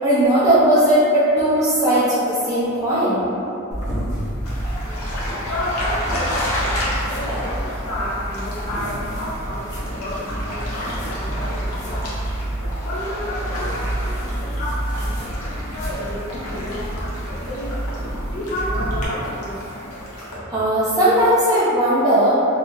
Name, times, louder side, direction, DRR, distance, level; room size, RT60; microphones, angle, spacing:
voice 1, 0.0-3.2 20.3-22.4, right 1 dB, 15° right, -12 dB, 0.4 m, -17 dB
sound 1, 3.7-19.0, right 1 dB, 35° left, 0.6 m, -29 dB
sound 2, 4.4-20.4, left 1 dB, 85° left, 0.7 m, -32 dB
voice 2, 5.5-12.0 12.8-17.8 18.3-19.6, left 1 dB, 60° left, -12 dB, 1.1 m, -31 dB
2.8 x 2.7 x 2.3 m, 2.8 s
head